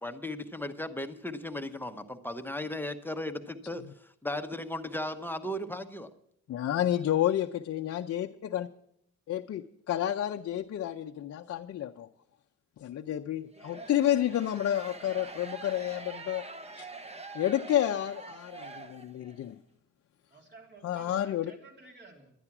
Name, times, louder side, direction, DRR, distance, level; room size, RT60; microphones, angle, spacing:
voice 1, 0.0-6.1, left 1 dB, 5° left, 7 dB, 0.9 m, -36 dB
voice 2, 6.5-8.7 9.3-12.1 12.8-16.4 16.8-16.9 17.3-19.6 20.8-21.5, left 11 dB, 55° left, 3 dB, 0.6 m, -30 dB
sound 1, 13.5-19.4, right 3 dB, 20° right, 1.0 m, -45 dB
voice 3, 20.3-22.3, right 3 dB, 35° right, 1 dB, 3.4 m, -52 dB
11.0 x 11.0 x 6.0 m, 0.73 s
cardioid pair, 90°, 30 cm